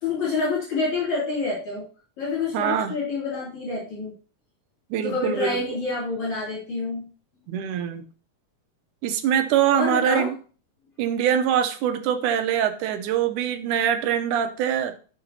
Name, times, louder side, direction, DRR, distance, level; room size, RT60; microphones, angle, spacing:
voice 1, 0.0-1.8 2.2-4.1 5.0-7.0 9.7-10.3, left 3 dB, 60° left, -7 dB, 4.3 m, -27 dB
voice 2, 2.5-3.0 4.9-5.6 7.5-8.0 9.0-10.4 11.0-15.0, right 9 dB, 75° right, 8 dB, 2.2 m, -23 dB
11.5 x 7.0 x 2.9 m, 0.38 s
omnidirectional pair, 3.9 m